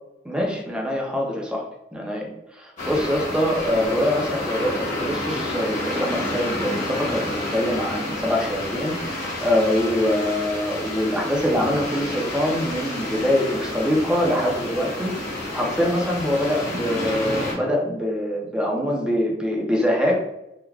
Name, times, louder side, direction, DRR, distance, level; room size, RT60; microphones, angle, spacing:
voice 1, 0.2-1.6 1.9-20.1, equal, 5° right, -2 dB, 0.5 m, -24 dB
sound 1, 2.8-17.5, left 1 dB, 45° left, 1.0 m, -30 dB
3.2 x 2.2 x 2.3 m, 0.88 s
head